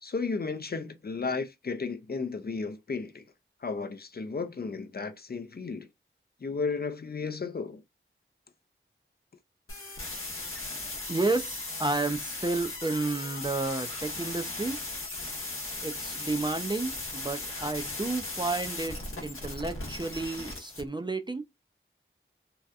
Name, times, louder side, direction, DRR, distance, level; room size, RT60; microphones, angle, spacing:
voice 1, 0.0-3.2 3.6-5.9 6.4-7.8, left 4 dB, 50° left, 0.4 m, -34 dB
sound 1, 9.7-20.8, left 2 dB, 80° left, 0.7 m, -37 dB
voice 2, 11.1-14.8 15.8-21.4, right 3 dB, 20° right, 0.3 m, -31 dB
2.7 x 2.2 x 2.3 m
wide cardioid pair, 50°, 21 cm